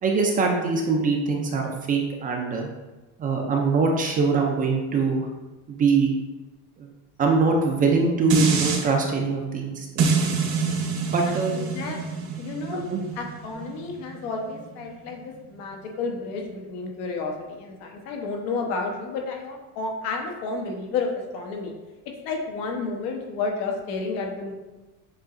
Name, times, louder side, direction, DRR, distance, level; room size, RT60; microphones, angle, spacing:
voice 1, 0.0-2.7 3.2-5.3 5.7-6.1 6.8-6.9 7.2-10.4 11.1-11.6 12.7-13.0, right 4 dB, 25° right, 2 dB, 0.4 m, -23 dB
sound 1, 7.8-10.5, right 1 dB, 25° left, 0.7 m, -44 dB
sound 2, 8.3-8.8 10.0-15.1 15.6-15.7, right 5 dB, 50° right, 0.9 m, -26 dB
voice 2, 11.2-12.1 12.3-12.8 13.2-21.7 22.2-24.5, left 4 dB, 85° left, 1 dB, 1.0 m, -31 dB
7.2 x 2.8 x 2.5 m, 1.1 s
cardioid pair, 165°, 35 cm